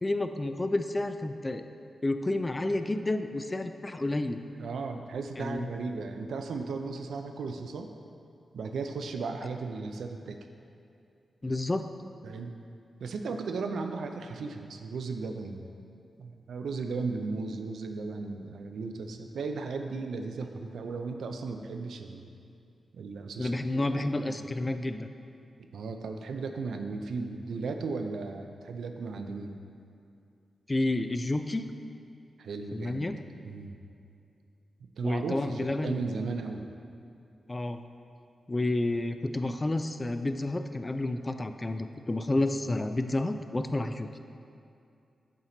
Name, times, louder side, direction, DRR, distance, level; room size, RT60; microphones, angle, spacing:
voice 1, 0.0-1.6 2.0-4.4 5.4-5.7 11.4-11.9 23.4-25.1 30.7-31.7 32.7-33.2 35.0-36.0 37.5-37.8 38.5-44.1, left 2 dB, 25° left, 9 dB, 0.3 m, -30 dB
voice 2, 4.6-7.9 8.5-10.4 12.2-12.5 13.0-15.6 16.2-22.3 22.9-24.4 25.7-29.6 32.4-33.1 33.4-33.8 34.8-36.7, right 4 dB, 85° right, 5 dB, 0.4 m, -36 dB
7.3 x 4.3 x 3.8 m, 2.5 s
cardioid pair, 70°, 0 cm